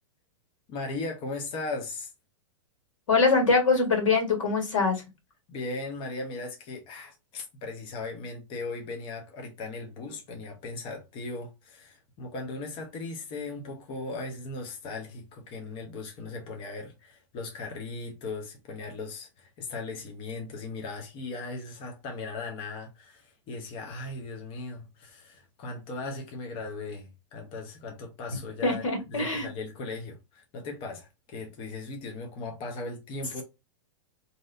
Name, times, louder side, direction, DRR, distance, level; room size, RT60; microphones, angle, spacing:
voice 1, 0.7-2.1 5.5-28.8 29.1-33.4, left 3 dB, 35° left, 0.8 m, -38 dB
voice 2, 3.1-5.0 28.6-29.5, left 4 dB, 85° left, 1.5 m, -23 dB
3.0 x 2.7 x 2.5 m
hypercardioid pair, 140°, 16 cm